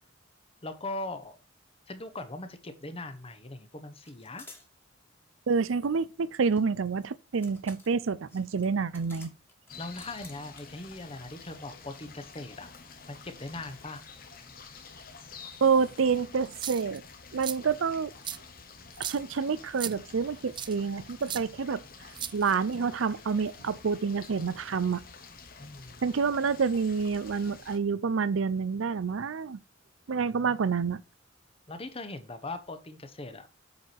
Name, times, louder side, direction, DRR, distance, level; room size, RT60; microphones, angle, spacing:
voice 1, 0.6-1.4 1.9-4.5 9.8-12.7 13.1-14.0 25.6-26.0 30.2-30.6 31.7-33.5, left 2 dB, 30° left, 1.1 m, -40 dB
sound 1, 2.1-2.3 2.5-3.3 4.0-4.7 5.9-10.8, left 2 dB, 10° left, 1.8 m, -54 dB
voice 2, 5.5-9.3 15.6-17.0 17.3-18.1 19.0-21.8 22.3-25.0 26.0-29.6 30.1-31.0, right 5 dB, 80° right, 0.5 m, -28 dB
sound 2, 9.7-27.8, left 5 dB, 50° left, 1.3 m, -49 dB
sound 3, 16.5-17.0 17.4-17.6 18.2-18.4 18.9-19.2 19.8-19.9 20.6-20.7 21.3-21.4 22.1-22.7, right 10 dB, 25° right, 0.3 m, -36 dB
8.1 x 4.8 x 4.4 m
head